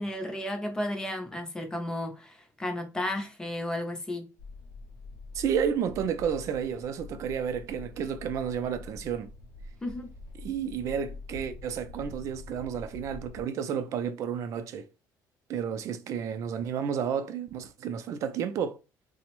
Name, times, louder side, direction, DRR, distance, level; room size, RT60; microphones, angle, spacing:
voice 1, 0.0-4.3 9.8-10.1, left 1 dB, 10° left, 0.5 m, -33 dB
sound 1, 4.4-13.4, left 2 dB, 60° left, 0.5 m, -45 dB
voice 2, 5.3-9.3 10.4-14.9 15.5-18.8, right 7 dB, 50° right, 0.4 m, -31 dB
3.3 x 2.0 x 2.9 m
cardioid pair, 175°, 7 cm